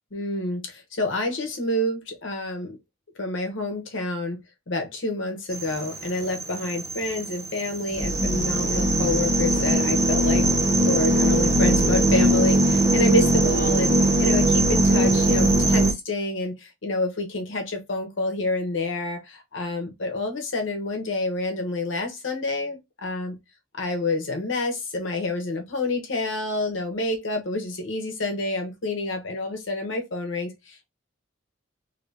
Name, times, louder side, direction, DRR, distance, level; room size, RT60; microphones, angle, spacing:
voice 1, 0.1-2.8 3.2-10.5 10.8-23.4 23.7-30.9, left 2 dB, 75° left, 0.9 m, -28 dB
sound 1, 5.5-15.9, right 1 dB, 15° right, 0.5 m, -20 dB
2.8 x 2.7 x 3.2 m
head